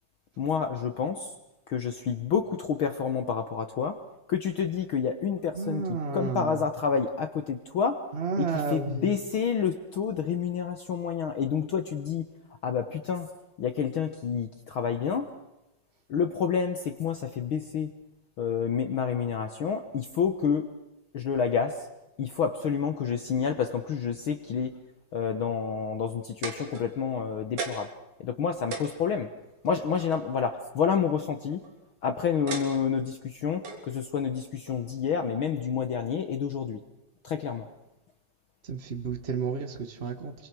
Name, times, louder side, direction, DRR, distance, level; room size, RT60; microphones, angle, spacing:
voice 1, 0.4-1.3 1.7-4.0 4.3-8.0 8.4-12.2 12.6-13.3 13.6-15.3 16.1-17.9 18.4-20.7 21.1-21.9 22.2-24.8 25.1-27.9 28.2-29.3 29.6-31.6 32.0-36.8 37.2-37.7, left 6 dB, 70° left, 7 dB, 1.2 m, -29 dB
voice 2, 5.6-6.6 8.1-9.1 38.7-40.3, right 5 dB, 85° right, 8 dB, 0.5 m, -31 dB
sound 1, 26.4-27.2 27.6-28.0 28.4-28.5 28.7-30.2 31.3-31.7 32.5-33.1 33.6-33.9 34.7-34.8, right 4 dB, 60° right, 4.6 m, -37 dB
27.0 x 25.0 x 6.2 m, 0.93 s
omnidirectional pair, 4.0 m